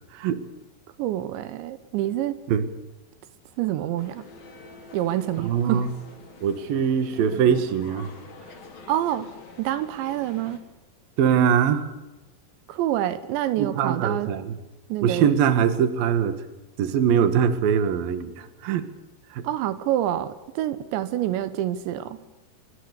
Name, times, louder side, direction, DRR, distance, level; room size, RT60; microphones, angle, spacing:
voice 1, 1.0-2.4 3.6-4.3 4.9-5.9 8.9-9.3 9.6-10.6 12.7-14.3 14.9-15.3 19.4-22.2, right 12 dB, 85° right, 13 dB, 3.4 m, -27 dB
sound 1, 4.0-10.6, left 3 dB, 55° left, 5.5 m, -46 dB
voice 2, 5.4-5.9 6.4-8.1 11.2-11.9 13.6-14.5 15.0-16.4 16.8-18.9 19.3-19.5, right 8 dB, 60° right, 11 dB, 3.3 m, -22 dB
25.5 x 22.5 x 6.9 m, 1.0 s
omnidirectional pair, 5.1 m